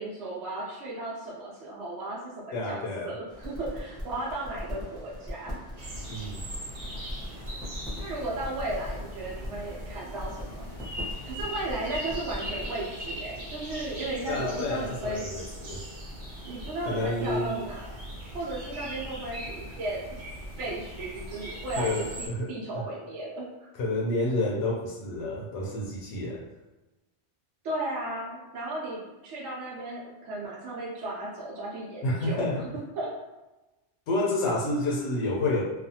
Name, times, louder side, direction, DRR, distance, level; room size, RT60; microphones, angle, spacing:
voice 1, 0.0-2.2 2.5-5.6 8.0-10.7 11.2-15.2 16.4-17.9 18.3-20.0 20.6-23.7 27.6-32.4 33.0-33.1, right 2 dB, 75° right, -6 dB, 0.9 m, -35 dB
voice 2, 2.5-3.1 6.1-6.4 14.3-15.8 16.8-17.6 21.8-22.6 23.7-26.4 32.0-32.7 34.1-35.6, left 2 dB, 75° left, -3 dB, 0.9 m, -29 dB
sound 1, 3.3-12.7, left 1 dB, 5° left, 0.7 m, -40 dB
sound 2, 5.8-22.3, equal, 50° right, 0.7 m, -40 dB
2.5 x 2.3 x 2.7 m, 1.1 s
omnidirectional pair, 1.2 m